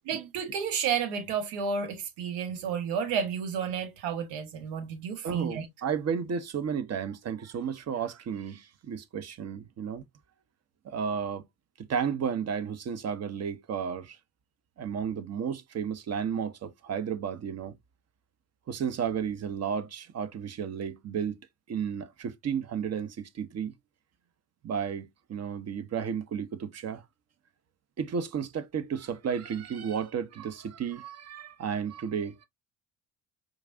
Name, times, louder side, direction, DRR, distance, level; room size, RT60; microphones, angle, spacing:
voice 1, 0.1-5.7, right 6 dB, 70° right, 1.2 m, -31 dB
voice 2, 5.2-10.0 10.9-11.4 11.9-14.2 14.8-17.7 18.7-21.4 21.7-23.7 24.6-27.0 28.0-32.5, right 7 dB, 35° right, 0.7 m, -33 dB
4.6 x 2.4 x 2.5 m
hypercardioid pair, 55°, 49 cm